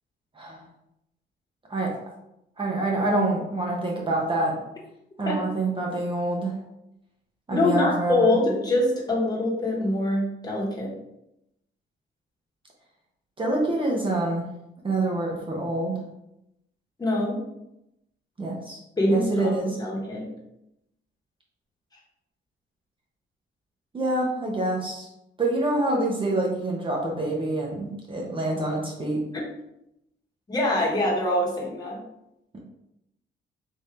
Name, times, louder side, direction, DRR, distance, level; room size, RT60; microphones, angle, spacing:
voice 1, 2.6-4.5 5.2-6.5 7.5-8.4 13.4-14.5 14.8-16.0 18.4-18.8 19.1-19.8 23.9-25.1 25.4-29.2, right 2 dB, 25° right, -2 dB, 0.9 m, -26 dB
voice 2, 7.5-10.9 17.0-17.4 19.0-20.3 30.5-32.0, left 1 dB, 20° left, -4 dB, 1.2 m, -24 dB
3.6 x 2.6 x 3.3 m, 0.84 s
cardioid pair, 90°, 20 cm